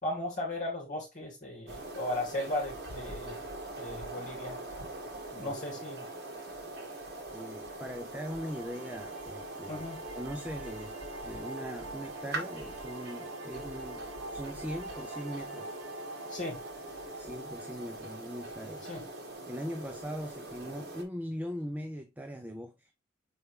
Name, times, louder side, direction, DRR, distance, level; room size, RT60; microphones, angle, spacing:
voice 1, 0.0-3.4 3.8-4.6 5.4-6.0 9.7-10.0 16.3-16.6 18.8-19.0, left 1 dB, 40° left, 2.6 m, -36 dB
sound 1, 1.7-21.0, right 2 dB, 50° right, 2.1 m, -43 dB
voice 2, 7.3-9.8 10.1-11.0 11.2-14.0 14.3-15.7 17.2-18.8 19.5-22.9, equal, 10° right, 0.5 m, -40 dB
sound 2, 8.3-19.4, right 1 dB, 75° right, 1.9 m, -45 dB
7.0 x 4.4 x 3.3 m
head